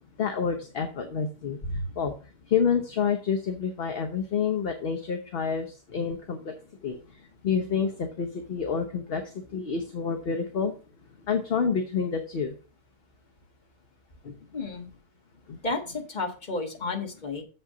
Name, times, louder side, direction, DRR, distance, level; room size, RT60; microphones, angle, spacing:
voice 1, 0.2-1.6 2.0-2.1 2.5-5.7 5.9-6.5 6.8-7.0 7.4-9.2 9.5-10.7 11.3-12.5 14.2-14.3 15.5-15.6, left 6 dB, 50° left, 5 dB, 0.9 m, -28 dB
voice 2, 14.5-14.9 15.6-17.4, left 3 dB, 30° left, 3 dB, 1.5 m, -32 dB
7.0 x 5.6 x 4.9 m, 0.35 s
omnidirectional pair, 1.6 m